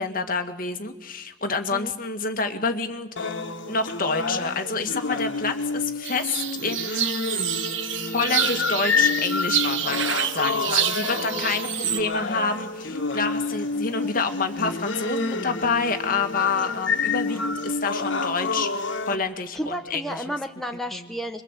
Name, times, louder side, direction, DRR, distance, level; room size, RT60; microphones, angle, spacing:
voice 1, 0.0-3.3 3.7-7.0 8.1-18.7 19.1-20.2 20.9-21.0, left 4 dB, 50° left, 6 dB, 2.0 m, -28 dB
sound 1, 3.2-19.1, left 4 dB, 85° left, 1.6 m, -28 dB
sound 2, 6.0-12.0, right 10 dB, 90° right, 1.2 m, -28 dB
sound 3, 11.1-17.8, right 2 dB, 40° right, 3.1 m, -50 dB
voice 2, 19.5-21.4, equal, ahead, 4 dB, 1.0 m, -32 dB
25.5 x 23.0 x 8.3 m, 0.94 s
head